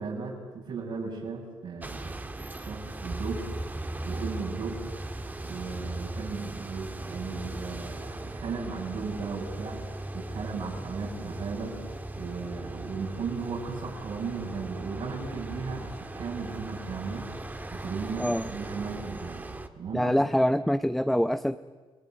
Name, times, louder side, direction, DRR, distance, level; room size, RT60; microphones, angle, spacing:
voice 1, 0.0-2.2 2.6-3.5 4.0-4.8 5.4-9.8 10.1-11.8 12.1-17.2 17.7-19.5 19.7-20.1, right 5 dB, 65° right, -4 dB, 6.9 m, -36 dB
sound 1, 1.8-19.7, right 2 dB, 20° right, 1.9 m, -38 dB
voice 2, 19.9-21.6, equal, ahead, 11 dB, 0.8 m, -25 dB
29.5 x 19.0 x 9.3 m, 1.3 s
cardioid pair, 90°, 10 cm